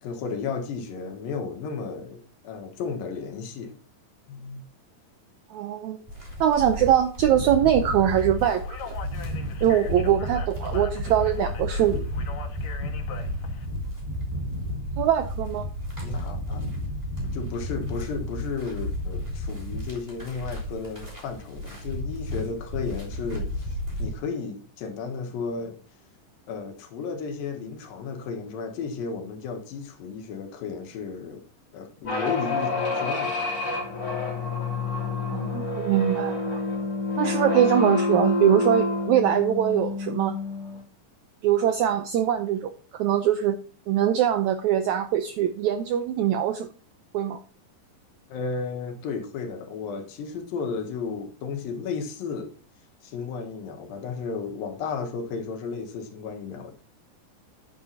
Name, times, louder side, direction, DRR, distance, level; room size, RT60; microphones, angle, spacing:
voice 1, 0.0-3.7 4.3-4.6 16.0-16.7 17.3-23.5 24.0-25.8 26.5-31.4 31.7-33.4 48.3-52.5 53.0-56.7, left 5 dB, 80° left, 3.0 m, -33 dB
voice 2, 5.5-6.0 6.4-8.9 9.6-12.1 15.0-15.7 35.3-36.6 37.2-40.4 41.4-43.6 43.9-46.7 47.1-47.4, right 10 dB, 85° right, 1.6 m, -23 dB
sound 1, 6.1-24.1, left 1 dB, 10° right, 3.0 m, -32 dB
Speech, 8.3-13.7, left 6 dB, 60° left, 2.2 m, -42 dB
sound 2, 32.0-40.8, left 3 dB, 25° left, 3.2 m, -28 dB
10.0 x 9.6 x 2.8 m
omnidirectional pair, 4.1 m